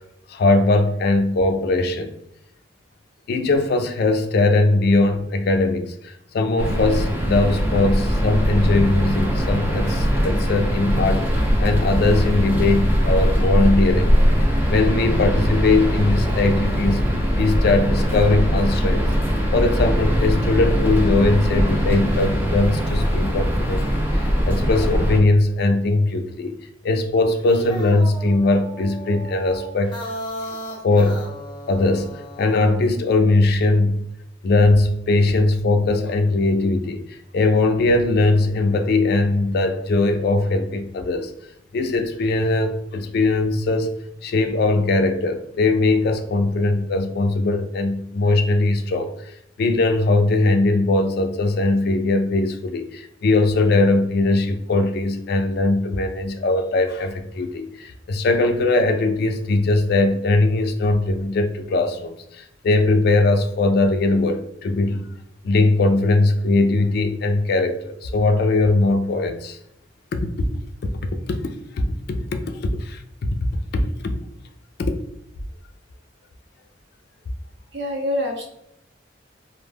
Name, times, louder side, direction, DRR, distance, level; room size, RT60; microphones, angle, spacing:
voice 1, 0.3-2.1 3.3-17.1 17.4-19.0 19.5-26.6 26.8-30.0 30.5-30.6 30.8-31.2 31.7-32.1 32.4-34.0 34.4-41.3 41.7-49.3 49.6-65.1 65.4-69.6 70.1-70.5 70.8-70.9 71.3-73.4 73.7-74.2 74.8-75.0, left 2 dB, 60° left, 7 dB, 0.3 m, -20 dB
sound 1, 6.6-25.2, equal, 10° right, 0.5 m, -21 dB
sound 2, 27.3-32.8, equal, 25° left, 0.6 m, -35 dB
voice 2, 77.7-78.4, left 1 dB, 70° right, 1 dB, 0.7 m, -25 dB
2.1 x 2.0 x 3.3 m, 0.79 s
head